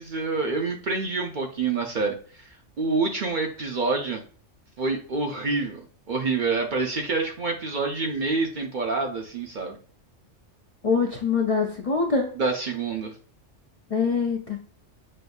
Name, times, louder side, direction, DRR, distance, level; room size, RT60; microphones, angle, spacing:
voice 1, 0.0-2.2 2.8-4.2 4.8-9.8 12.3-13.1, right 3 dB, 50° right, 2 dB, 0.7 m, -27 dB
voice 2, 10.8-12.3 13.9-14.6, left 4 dB, 40° left, 0 dB, 0.5 m, -24 dB
6.4 x 2.6 x 2.3 m, 0.42 s
omnidirectional pair, 1.2 m